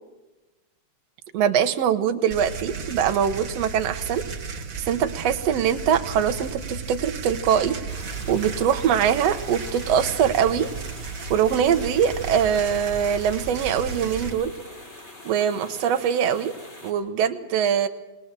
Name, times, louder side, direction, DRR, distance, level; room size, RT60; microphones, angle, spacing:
voice 1, 1.3-4.2 4.5-7.8 8.3-10.7 11.3-14.5 15.3-16.5 16.8-17.9, right 8 dB, 65° right, 9 dB, 2.0 m, -23 dB
sound 1, 2.3-14.3, right 5 dB, 35° right, 1.6 m, -34 dB
sound 2, 7.9-16.9, left 2 dB, 20° left, 3.4 m, -44 dB
21.0 x 19.5 x 7.5 m, 1.1 s
omnidirectional pair, 3.4 m